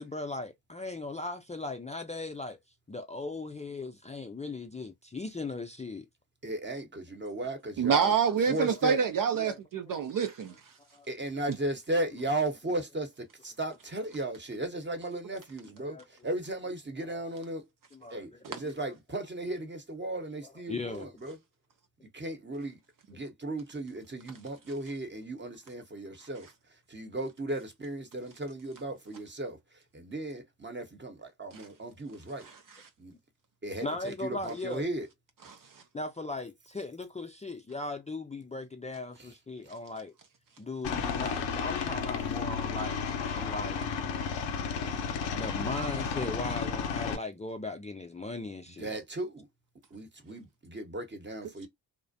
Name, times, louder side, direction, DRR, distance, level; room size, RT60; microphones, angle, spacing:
voice 1, 0.0-2.6 2.9-6.1 9.3-10.0 10.9-11.0 11.9-12.2 15.8-16.3 17.1-17.2 17.9-18.9 20.4-21.1 33.8-34.9 35.9-40.1 40.6-44.2 45.3-48.9, left 2 dB, 15° left, 0.4 m, -38 dB
voice 2, 6.4-8.1 8.5-9.0 11.1-17.6 18.1-21.4 22.1-22.8 23.1-26.5 26.9-29.6 29.9-32.5 33.0-33.1 33.6-35.1 48.8-49.5 49.9-51.7, right 1 dB, 25° right, 1.0 m, -36 dB
voice 3, 7.8-10.5 31.5-31.6, right 6 dB, 50° right, 0.5 m, -26 dB
Aircraft, 40.8-47.2, left 6 dB, 80° left, 0.7 m, -32 dB
2.5 x 2.0 x 2.6 m
supercardioid pair, 45°, 42 cm